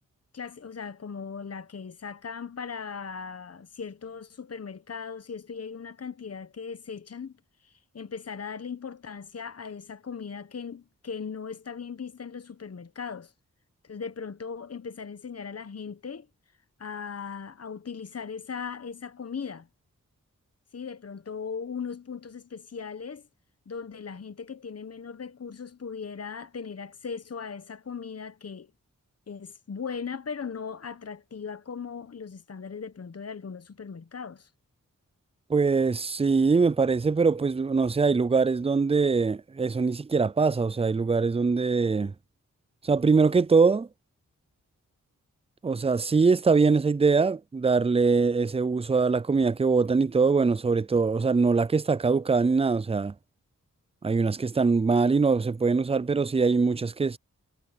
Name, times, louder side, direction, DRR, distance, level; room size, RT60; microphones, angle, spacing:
voice 1, 0.3-7.3 7.6-13.3 13.8-16.3 16.8-19.7 20.7-23.3 23.7-28.7 29.3-34.5, left 6 dB, 50° left, 1.1 m, -38 dB
voice 2, 35.5-42.1 42.8-43.9 45.6-53.1 54.0-57.2, right 4 dB, 20° right, 0.4 m, -23 dB
cardioid pair, 50°, 32 cm